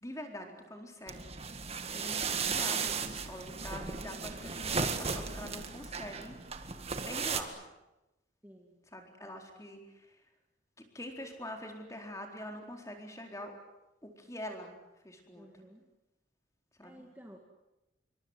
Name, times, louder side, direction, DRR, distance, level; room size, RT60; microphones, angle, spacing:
voice 1, 0.0-6.4 7.0-7.6 8.9-10.2 10.8-13.6 14.0-14.7 15.0-15.5 16.8-17.0, left 1 dB, 15° left, 3 dB, 4.2 m, -45 dB
sound 1, 1.1-7.4, right 5 dB, 30° right, 1.9 m, -35 dB
voice 2, 8.4-8.8 15.3-15.9 16.8-17.4, equal, 10° right, 1 dB, 2.4 m, -53 dB
28.0 x 24.0 x 8.1 m, 0.99 s
head